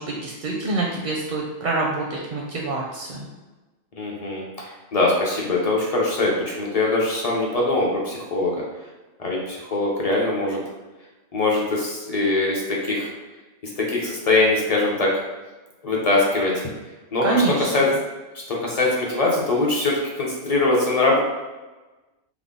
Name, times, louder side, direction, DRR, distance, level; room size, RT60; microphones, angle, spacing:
voice 1, 0.0-3.3 17.2-17.7, right 3 dB, 60° right, -2 dB, 0.5 m, -26 dB
voice 2, 4.0-8.6 9.2-10.6 11.3-13.1 13.8-15.1 15.8-16.7 17.1-17.9 18.5-21.2, left 2 dB, 40° left, -3 dB, 0.6 m, -22 dB
3.5 x 2.1 x 3.6 m, 1.2 s
omnidirectional pair, 1.2 m